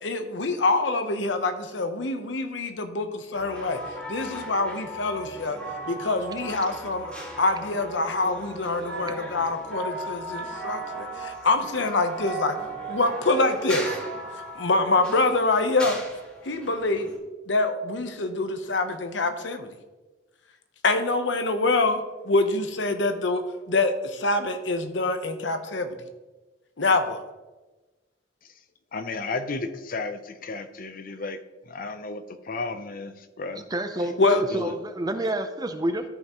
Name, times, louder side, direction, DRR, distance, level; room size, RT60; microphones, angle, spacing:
voice 1, 0.0-3.8 4.1-5.6 5.9-7.1 7.4-12.6 12.9-14.0 14.6-16.0 16.4-17.1 17.5-19.7 20.8-26.0 26.8-27.2 34.2-34.4, left 2 dB, 80° left, 8 dB, 0.8 m, -25 dB
sound 1, 3.3-17.2, right 1 dB, 5° left, 2.0 m, -37 dB
voice 2, 28.9-31.4 31.7-33.6 34.0-34.1 34.5-34.7, left 3 dB, 50° left, 10 dB, 0.6 m, -33 dB
voice 3, 33.6-36.0, right 1 dB, 20° right, 8 dB, 0.6 m, -29 dB
13.0 x 5.6 x 3.0 m, 1.2 s
head